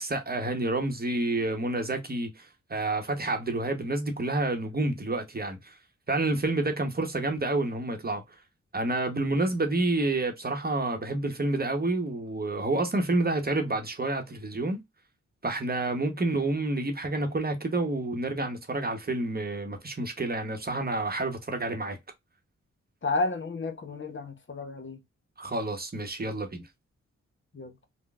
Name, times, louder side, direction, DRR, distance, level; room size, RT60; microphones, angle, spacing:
voice 1, 0.0-5.8 6.1-8.2 8.7-14.8 15.4-22.0 25.4-26.6, right 2 dB, 30° right, 0.9 m, -29 dB
voice 2, 23.0-25.0 27.5-27.8, left 3 dB, 40° left, 0.8 m, -31 dB
3.7 x 2.2 x 2.3 m
cardioid pair, 50°, 30 cm